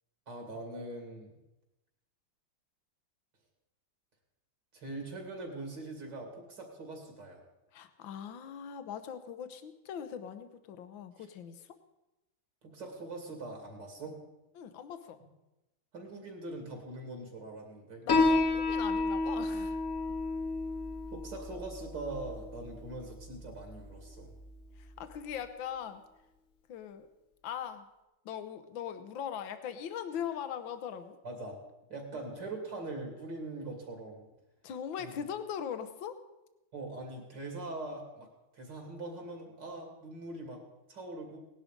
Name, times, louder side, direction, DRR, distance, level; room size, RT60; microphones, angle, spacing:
voice 1, 0.3-1.3 4.7-7.4 12.6-14.2 15.9-18.1 21.1-24.3 31.2-31.6 31.9-34.3 35.0-35.1 36.7-38.3 38.5-40.6 40.9-41.4, right 2 dB, 65° right, 2 dB, 3.3 m, -42 dB
voice 2, 7.7-11.8 14.6-15.2 18.0-19.8 24.8-26.0 26.7-27.1 27.4-27.9 28.3-31.2 32.1-32.4 34.6-36.2, left 8 dB, 75° left, 10 dB, 1.8 m, -40 dB
Piano, 18.1-25.2, left 3 dB, 50° left, 1.6 m, -32 dB
18.0 x 11.0 x 5.2 m, 0.97 s
omnidirectional pair, 2.2 m